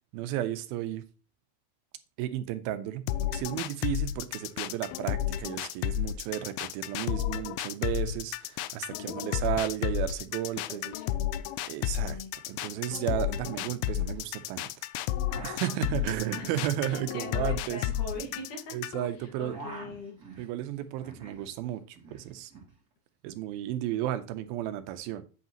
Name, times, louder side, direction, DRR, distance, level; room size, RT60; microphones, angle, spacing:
voice 1, 0.1-1.0 2.2-11.0 11.7-14.7 15.4-17.8 18.7-19.6 20.4-22.5 23.2-25.2, right 12 dB, 90° right, 2.5 m, -33 dB
sound 1, 3.1-19.1, left 12 dB, 85° left, 2.4 m, -32 dB
voice 2, 9.0-9.3 10.7-11.2 11.8-12.3 15.7-16.5 16.9-18.7 19.2-20.2, left 3 dB, 60° left, 3.1 m, -42 dB
sound 2, 12.1-12.2 12.4-12.8 13.1-14.3 15.0-18.9 19.2-21.5 21.7-22.7, right 3 dB, 30° right, 2.1 m, -47 dB
8.3 x 8.2 x 3.0 m
omnidirectional pair, 4.3 m